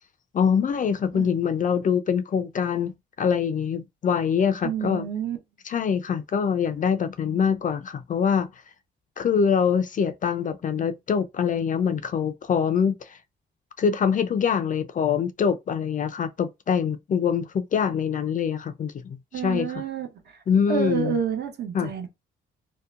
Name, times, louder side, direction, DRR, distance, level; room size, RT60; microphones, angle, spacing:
voice 1, 0.3-5.1 5.6-8.5 9.2-13.2 13.8-19.2 19.4-19.7 20.5-21.2 21.7-21.9, left 7 dB, 40° left, 0.4 m, -24 dB
voice 2, 4.6-5.4 19.3-20.4 20.7-22.1, right 8 dB, 55° right, 0.9 m, -29 dB
2.8 x 2.1 x 2.4 m
cardioid pair, 90°, 20 cm